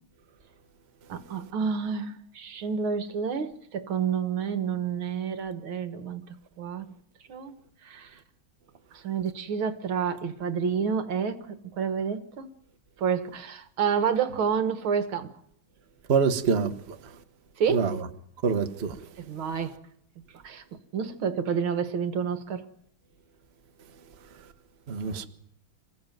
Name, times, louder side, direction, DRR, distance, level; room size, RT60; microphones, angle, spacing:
voice 1, 1.1-6.3 6.6-6.9 7.3-7.6 7.8-8.2 8.9-12.5 13.0-15.3 17.6-17.9 19.2-19.7 20.4-20.6 20.9-22.7, right 6 dB, 70° right, 2.2 m, -29 dB
voice 2, 16.1-17.0 17.7-18.0 18.4-19.0 24.9-25.3, right 5 dB, 35° right, 1.3 m, -25 dB
27.0 x 15.5 x 9.2 m
omnidirectional pair, 2.4 m